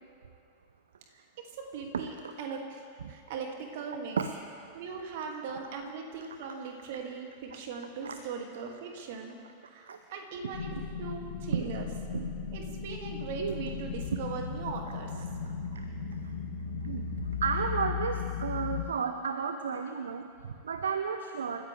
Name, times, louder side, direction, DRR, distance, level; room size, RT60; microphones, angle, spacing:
voice 1, 1.1-2.8 3.1-4.2 4.7-9.4 9.7-10.7 11.0-11.9 12.5-15.3, right 5 dB, 50° right, 2 dB, 2.4 m, -40 dB
voice 2, 1.9-2.3 4.2-4.3 8.0-8.2 9.9-10.0 10.7-10.8 11.5-11.7 12.1-12.3 13.4-13.7 15.7-15.8 16.8-17.0 17.4-21.7, right 6 dB, 70° right, 7 dB, 0.8 m, -33 dB
sound 1, 10.5-18.8, left 6 dB, 60° left, 1.7 m, -36 dB
29.0 x 14.5 x 3.4 m, 2.4 s
figure-of-eight pair, 90°, 0 cm